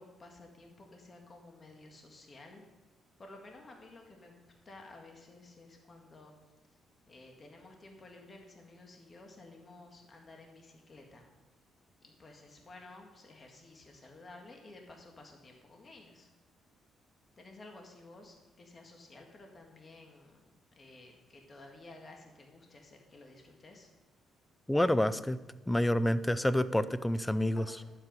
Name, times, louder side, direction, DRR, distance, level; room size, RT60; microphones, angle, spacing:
voice 1, 0.0-2.6 3.2-6.3 7.1-11.2 12.0-16.3 17.4-20.5 20.8-23.9 27.7-27.8, left 2 dB, 35° left, 2 dB, 1.9 m, -53 dB
voice 2, 24.7-25.4 25.7-27.7, left 1 dB, 10° left, 15 dB, 0.5 m, -28 dB
11.5 x 8.0 x 5.4 m, 1.2 s
cardioid pair, 90°, 0 cm